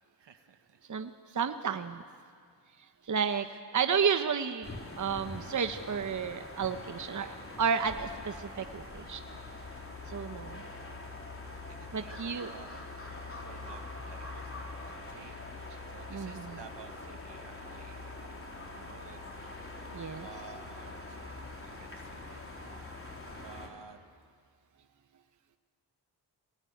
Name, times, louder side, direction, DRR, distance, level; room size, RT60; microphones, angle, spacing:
voice 1, 0.2-0.8 10.8-10.9 11.7-12.8 13.2-15.4 15.9-18.4 18.7-19.2 20.2-21.3 21.6-22.4 23.4-24.0, right 7 dB, 70° right, 8 dB, 1.6 m, -53 dB
voice 2, 0.9-2.0 3.0-3.5 3.7-9.2 10.1-10.6 11.9-12.6 16.1-16.6 19.9-20.3, right 6 dB, 40° right, 8 dB, 1.0 m, -32 dB
sound 1, 4.6-23.7, left 2 dB, 30° left, 3.8 m, -44 dB
21.0 x 20.5 x 9.3 m, 2.1 s
cardioid pair, 60°, 44 cm